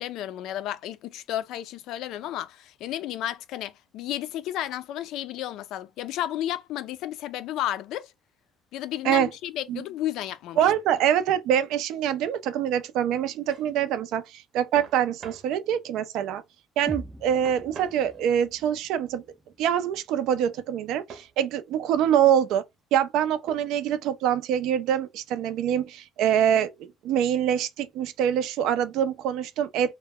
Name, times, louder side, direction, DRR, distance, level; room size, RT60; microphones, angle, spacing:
voice 1, 0.0-8.1 8.7-10.6, left 12 dB, 75° left, 0.3 m, -32 dB
voice 2, 10.6-16.4 16.8-19.2 19.6-22.6 22.9-29.9, right 9 dB, 75° right, 0.4 m, -25 dB
sound 1, 13.2-13.7 14.8-15.5 17.5-18.5 21.1-21.4 22.1-22.5 23.5-23.9, right 5 dB, 50° right, 0.7 m, -46 dB
sound 2, 16.9-20.8, equal, 5° right, 0.4 m, -44 dB
2.2 x 2.0 x 3.5 m
cardioid pair, 125°, 0 cm